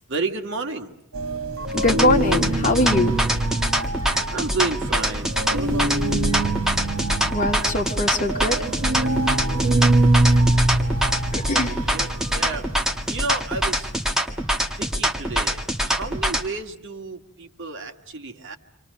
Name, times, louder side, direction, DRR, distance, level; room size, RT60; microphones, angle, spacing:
voice 1, 0.1-0.9 4.3-6.2 11.6-12.1 12.3-12.7 13.1-13.9 14.7-18.6, right 3 dB, 60° right, 5 dB, 2.0 m, -31 dB
sound 1, 1.1-14.0, right 2 dB, 85° right, 1.9 m, -24 dB
voice 2, 1.7-3.2 7.3-8.6 11.3-11.8, left 1 dB, 40° left, 3 dB, 2.2 m, -22 dB
sound 2, 1.7-16.5, equal, 5° right, 1.7 m, -25 dB
28.5 x 26.0 x 6.5 m, 0.83 s
head